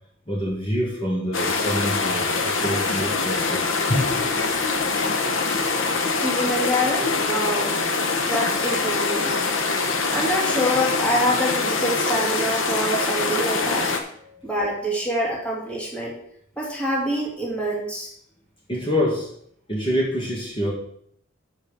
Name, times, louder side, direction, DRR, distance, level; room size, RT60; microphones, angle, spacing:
voice 1, 0.3-4.1 14.2-14.4 18.7-19.3 19.7-20.7, equal, 25° left, -4 dB, 1.8 m, -26 dB
sound 1, 1.3-14.0, left 4 dB, 75° left, 1.2 m, -24 dB
voice 2, 6.2-7.7 8.3-9.4 10.1-13.9 14.4-16.1 16.6-18.1, equal, 5° left, -4 dB, 2.2 m, -25 dB
7.2 x 5.4 x 6.8 m, 0.67 s
head